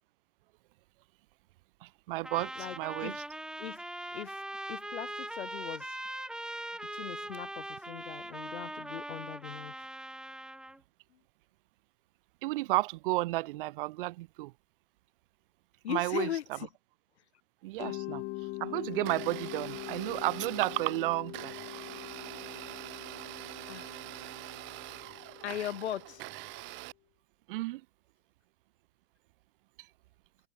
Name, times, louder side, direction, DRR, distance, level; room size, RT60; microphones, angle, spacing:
voice 1, 1.8-3.1 12.4-14.5 15.9-16.3 17.6-18.2 18.6-21.5 27.5-27.8, right 19 dB, 55° right, 4.7 m, -32 dB
Trumpet, 2.2-10.8, right 1 dB, ahead, 4.9 m, -41 dB
voice 2, 2.6-3.2 3.6-3.8 4.1-4.4 4.7-6.0 6.9-9.9 11.1-11.2 15.8-16.7 23.7-24.1 25.4-26.2, left 11 dB, 80° left, 7.8 m, -39 dB
Mallet percussion, 17.8-26.5, left 25 dB, 35° left, 6.9 m, -43 dB
Domestic sounds home sounds, 18.9-26.9, right 23 dB, 35° right, 5.4 m, -44 dB
supercardioid pair, 155°, 33 cm